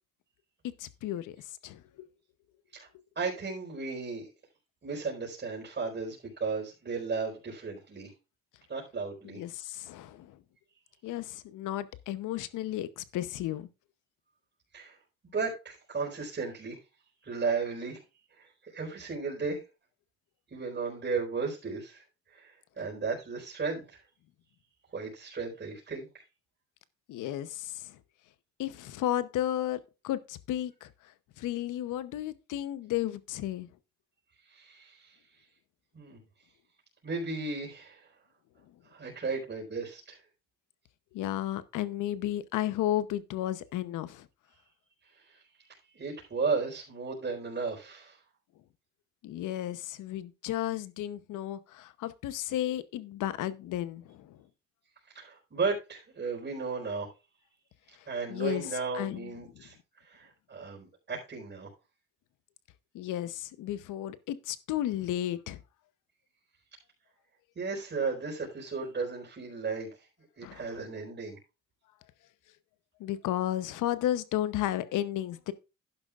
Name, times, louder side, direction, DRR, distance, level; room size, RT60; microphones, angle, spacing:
voice 1, 0.8-1.4 1.6-2.1 9.2-10.4 11.0-13.7 27.1-28.0 28.6-29.8 30.0-30.9 31.4-33.7 41.1-44.3 49.2-54.4 58.3-58.7 58.9-59.3 62.9-65.6 70.4-70.7 73.0-75.5, left 13 dB, 85° left, 0.9 m, -33 dB
voice 2, 3.1-4.3 4.8-8.1 8.7-9.4 14.7-15.0 15.3-16.8 17.2-18.0 18.4-19.6 20.5-22.0 22.3-22.5 22.8-24.0 24.9-26.2 34.5-35.1 35.9-36.2 37.0-38.1 38.9-40.2 45.3-45.4 45.9-48.2 55.1-57.1 58.1-59.7 60.0-61.7 67.6-69.9 70.4-71.4, right 4 dB, 35° right, 4.5 m, -35 dB
12.0 x 10.5 x 2.4 m
cardioid pair, 90°, 30 cm